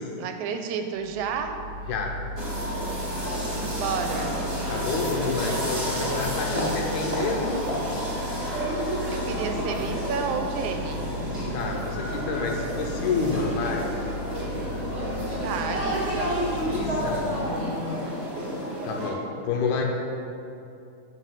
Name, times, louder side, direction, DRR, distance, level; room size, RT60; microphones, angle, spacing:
voice 1, 0.2-1.6 3.7-4.4 9.1-11.1 15.4-16.4, right 6 dB, 85° right, 6 dB, 1.9 m, -31 dB
Mechanical fan, 1.0-17.8, left 1 dB, 60° right, 1.6 m, -37 dB
sound 1, 2.4-19.1, equal, 25° right, 0.8 m, -30 dB
voice 2, 4.7-7.6 11.5-13.9 16.6-17.3 18.8-19.8, left 4 dB, 80° left, 1 dB, 2.1 m, -29 dB
6.1 x 4.9 x 6.5 m, 2.7 s
omnidirectional pair, 3.4 m